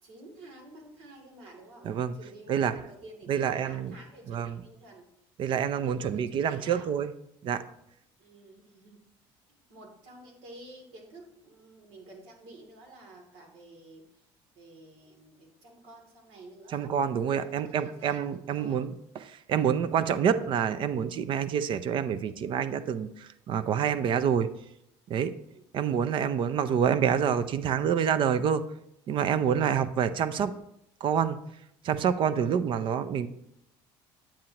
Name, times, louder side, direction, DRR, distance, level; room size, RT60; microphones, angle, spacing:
voice 1, 0.0-5.0 5.7-6.9 8.2-14.3 14.5-16.8 17.4-18.8 25.4-25.7 32.4-33.0, right 2 dB, 80° right, 2 dB, 2.7 m, -51 dB
voice 2, 3.3-3.9 4.3-4.6 5.4-7.1 7.4-7.6 16.7-24.5 25.1-25.3 25.7-28.6 29.1-30.6 31.0-31.4 31.8-33.3, right 8 dB, 50° right, 13 dB, 0.5 m, -27 dB
9.0 x 8.6 x 2.9 m, 0.79 s
cardioid pair, 120°, 11 cm